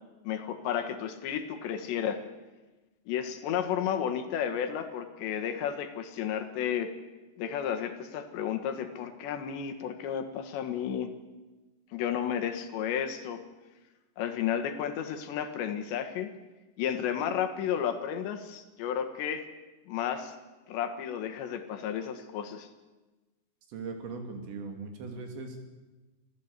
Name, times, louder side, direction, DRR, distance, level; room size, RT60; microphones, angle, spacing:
voice 1, 0.3-2.2 3.1-6.9 7.4-11.1 11.9-13.4 14.2-16.3 16.8-19.5 19.9-20.4 20.7-22.7, left 9 dB, 85° left, 7 dB, 3.8 m, -32 dB
voice 2, 23.7-25.6, right 4 dB, 90° right, 4 dB, 5.3 m, -39 dB
26.0 x 15.5 x 8.4 m, 1.2 s
omnidirectional pair, 5.0 m